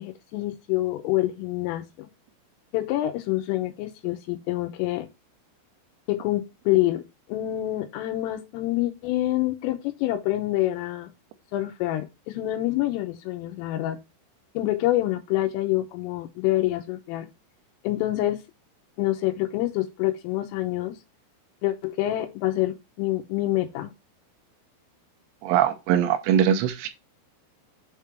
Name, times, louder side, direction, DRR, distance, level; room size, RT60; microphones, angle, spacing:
voice 1, 0.0-2.1 2.7-5.1 6.1-7.0 7.3-11.1 11.5-14.0 14.6-17.3 17.8-18.4 19.0-21.0 21.6-23.9, left 15 dB, 90° left, 3.5 m, -26 dB
voice 2, 25.4-26.9, right 9 dB, 80° right, 2.6 m, -22 dB
7.7 x 3.7 x 4.4 m
omnidirectional pair, 5.8 m